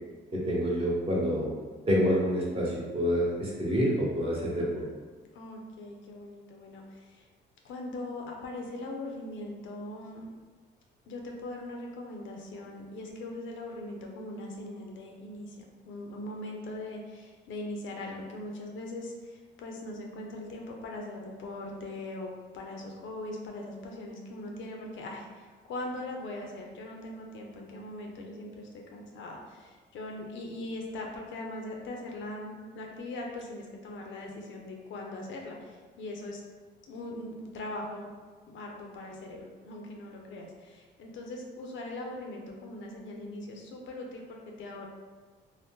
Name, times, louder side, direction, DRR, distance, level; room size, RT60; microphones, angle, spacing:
voice 1, 0.3-1.5 1.9-4.8, equal, 30° right, -5 dB, 1.0 m, -27 dB
voice 2, 5.3-7.3 7.6-10.3 11.1-36.4 36.9-38.1 38.5-44.9, left 1 dB, 75° left, 0 dB, 0.6 m, -40 dB
2.7 x 2.1 x 3.5 m, 1.4 s
cardioid pair, 90°, 20 cm